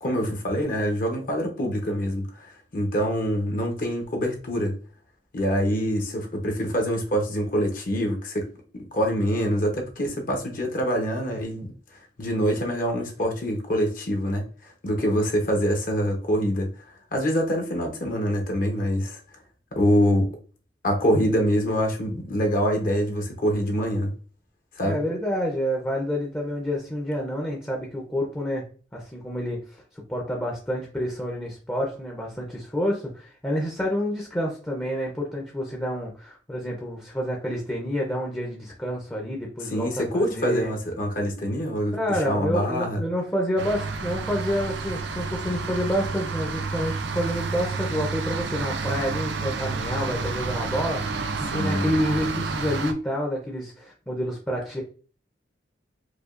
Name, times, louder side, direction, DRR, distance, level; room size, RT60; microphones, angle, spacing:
voice 1, 0.0-4.7 5.3-8.5 8.7-11.7 12.2-16.7 17.1-19.2 19.7-20.3 20.8-24.1 24.8-25.0 39.7-43.0 51.5-51.8, equal, 45° left, 2 dB, 0.8 m, -25 dB
voice 2, 24.8-28.7 28.9-29.8 30.1-40.7 41.9-51.0 51.5-54.8, equal, 10° left, -1 dB, 0.6 m, -28 dB
sound 1, 43.6-52.9, right 4 dB, 65° right, 0.5 m, -30 dB
4.8 x 2.3 x 2.5 m, 0.40 s
head